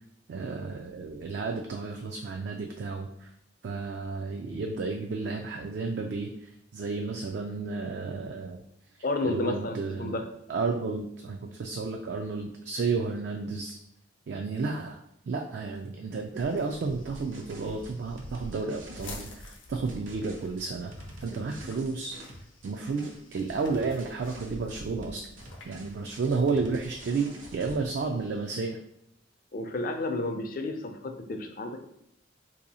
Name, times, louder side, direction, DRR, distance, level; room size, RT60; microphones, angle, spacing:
voice 1, 0.3-3.3 3.6-8.6 9.2-10.1 10.5-13.8 14.3-15.0 15.3-20.9 21.2-22.2 22.6-25.3 25.6-28.8, right 4 dB, 60° right, 3 dB, 0.3 m, -32 dB
voice 2, 9.0-10.3 29.5-31.9, left 2 dB, 45° left, 5 dB, 0.4 m, -31 dB
sound 1, 16.3-28.5, left 1 dB, 85° left, 0.7 m, -48 dB
sound 2, 16.8-19.3 19.9-22.7 23.0-24.8 25.0-27.8, right 1 dB, 90° right, 0.8 m, -47 dB
2.7 x 2.6 x 4.1 m, 0.75 s
head